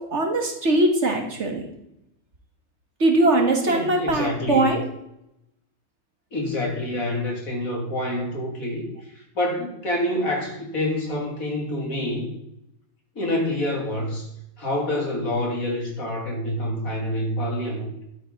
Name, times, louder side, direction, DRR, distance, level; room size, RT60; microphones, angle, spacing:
voice 1, 0.1-1.6 3.0-4.8, right 2 dB, 50° right, 3 dB, 1.9 m, -21 dB
voice 2, 3.6-4.7 6.3-12.3 13.1-14.3 14.6-17.9, left 1 dB, 70° left, 0 dB, 3.2 m, -27 dB
12.0 x 9.2 x 4.1 m, 0.81 s
omnidirectional pair, 1.5 m